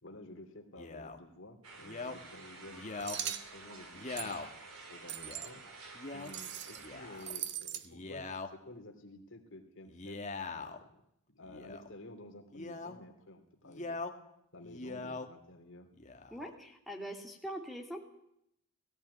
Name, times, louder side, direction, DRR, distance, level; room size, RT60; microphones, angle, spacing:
voice 1, 0.0-2.8 3.1-4.4 4.9-5.7 6.1-11.0 11.3-14.0 14.5-15.9, left 1 dB, 60° left, 5 dB, 3.1 m, -52 dB
Male speech man speaking, 0.8-1.2 1.8-2.2 2.7-3.2 3.9-4.5 5.2-5.5 5.9-6.3 6.8-7.3 7.8-8.5 9.8-10.8 11.4-11.9 12.5-13.0 13.6-14.1 14.6-15.3 15.9-16.5, left 3 dB, 35° left, 1.8 m, -42 dB
sound 1, 1.6-7.4, right 3 dB, 85° right, 4.9 m, -51 dB
sound 2, 3.0-3.5 4.2-4.4 5.1-5.5 6.3-6.9 7.2-7.9, right 10 dB, 55° right, 1.2 m, -40 dB
voice 2, 16.3-18.0, equal, ahead, 3 dB, 2.9 m, -42 dB
18.0 x 16.0 x 9.7 m, 0.76 s
head